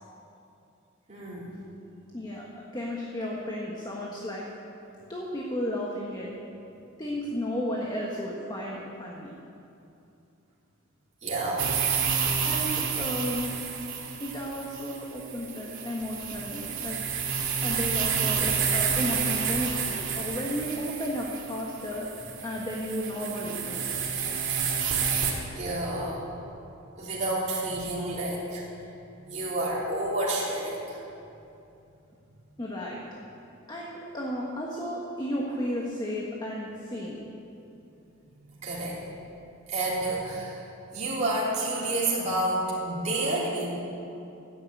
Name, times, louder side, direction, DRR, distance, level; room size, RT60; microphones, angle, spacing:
voice 1, 1.1-1.6 11.2-11.7 24.4-24.5 25.5-26.2 27.0-28.6 29.3-31.0 38.6-39.0 39.7-40.6 40.9-43.7, right 2 dB, 35° right, -7 dB, 3.5 m, -29 dB
voice 2, 2.1-4.4 5.1-6.3 7.0-9.3 12.4-13.5 14.2-17.0 17.6-22.1 22.4-23.8 32.6-33.0 33.7-37.2, equal, 20° left, -3 dB, 1.4 m, -33 dB
sound 1, 11.6-25.3, right 6 dB, 65° right, 2.5 m, -30 dB
14.0 x 9.4 x 8.3 m, 2.8 s
head